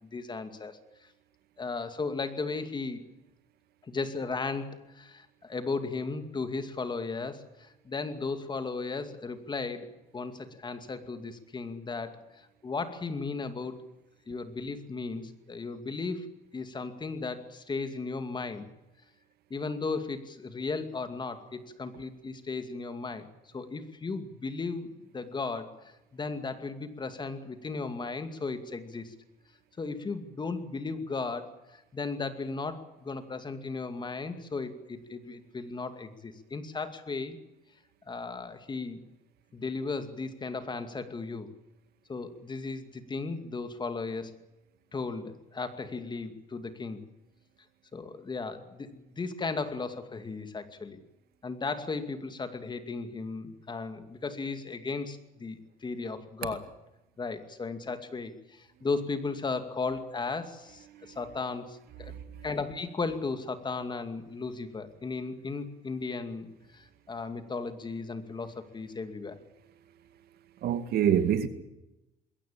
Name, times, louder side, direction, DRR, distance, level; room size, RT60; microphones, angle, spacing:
voice 1, 0.1-0.8 1.6-3.0 3.8-9.9 10.1-13.8 14.3-16.3 16.5-18.7 19.5-23.3 23.5-24.9 25.1-29.1 29.8-37.4 38.1-39.0 39.5-41.5 42.1-44.4 44.9-47.0 47.9-51.0 51.4-56.6 57.2-62.1 62.4-69.4, left 4 dB, 25° left, 2.4 m, -36 dB
voice 2, 62.0-62.5 70.6-71.5, right 9 dB, 70° right, 2.2 m, -27 dB
21.5 x 17.5 x 8.7 m
cardioid pair, 110°, 17 cm